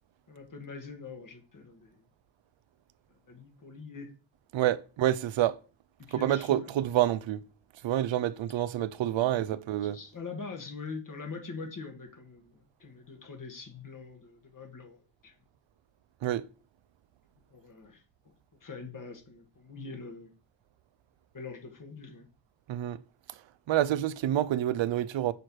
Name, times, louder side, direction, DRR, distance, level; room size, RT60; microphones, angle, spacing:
voice 1, 0.3-2.0 3.3-4.1 6.1-6.7 9.1-9.5 9.8-15.3 17.5-18.3 18.6-20.3 21.3-22.3, left 4 dB, 45° left, 1.7 m, -44 dB
voice 2, 4.5-5.5 6.1-7.4 7.8-10.0 16.2-16.4 22.7-23.0 23.7-25.3, right 12 dB, 85° right, 0.5 m, -28 dB
6.3 x 4.5 x 4.7 m
wide cardioid pair, 120°, 44 cm